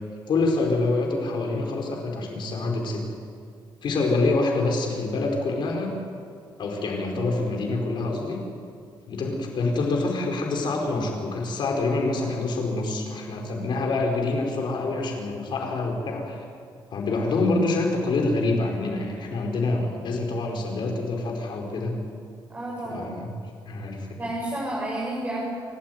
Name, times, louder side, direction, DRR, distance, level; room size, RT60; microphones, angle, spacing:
voice 1, 0.3-3.0 3.8-5.9 6.6-8.4 9.1-16.4 16.9-22.0 22.9-23.3 23.7-24.1, left 3 dB, 65° left, 1 dB, 5.2 m, -26 dB
voice 2, 22.5-23.2 24.2-25.5, right 1 dB, 20° right, -5 dB, 6.7 m, -31 dB
29.0 x 13.0 x 9.5 m, 2.3 s
cardioid pair, 130°, 9 cm